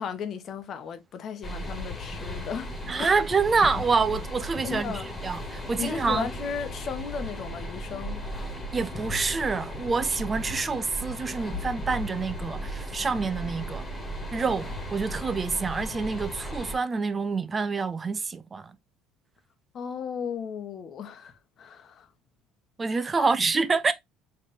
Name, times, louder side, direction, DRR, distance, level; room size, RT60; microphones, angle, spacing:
voice 1, 0.0-3.1 4.6-5.1 5.8-8.2 19.7-22.1 23.1-23.3, left 6 dB, 50° left, 1.0 m, -35 dB
sound 1, 1.4-16.8, equal, 20° left, 1.9 m, -36 dB
voice 2, 2.9-6.3 8.7-13.9 14.3-18.7 22.8-23.9, right 4 dB, 30° right, 0.5 m, -27 dB
4.2 x 3.3 x 3.4 m
supercardioid pair, 85°, 0 cm